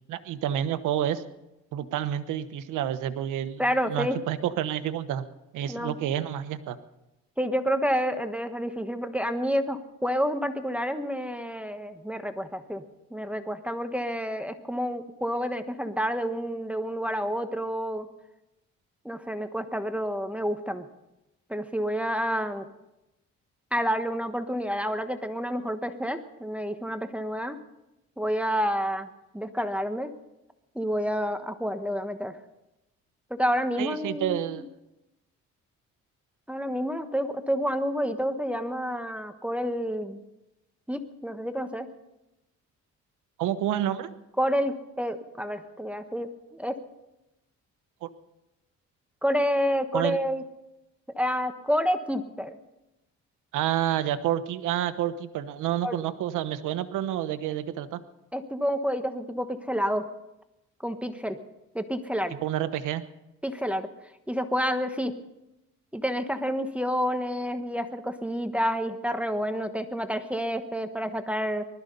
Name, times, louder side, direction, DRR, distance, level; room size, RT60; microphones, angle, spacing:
voice 1, 0.1-1.2 1.7-5.2 5.5-6.8 33.8-34.7 43.4-44.1 48.0-48.1 49.9-50.2 53.5-58.0 62.4-63.0, right 11 dB, 90° right, 12 dB, 1.1 m, -29 dB
voice 2, 3.6-4.2 5.7-5.9 7.4-12.8 13.1-18.1 19.0-20.9 21.5-22.6 23.7-27.6 28.2-29.1 29.3-30.1 30.7-32.4 33.3-34.7 36.5-40.2 40.9-41.9 44.4-46.8 49.2-50.4 51.1-52.6 55.8-55.9 58.3-60.1 60.8-61.4 61.7-62.4 63.4-63.9 64.3-65.1 65.9-71.6, equal, 5° right, 8 dB, 1.2 m, -29 dB
20.0 x 13.0 x 5.4 m, 0.93 s
cardioid pair, 90°, 30 cm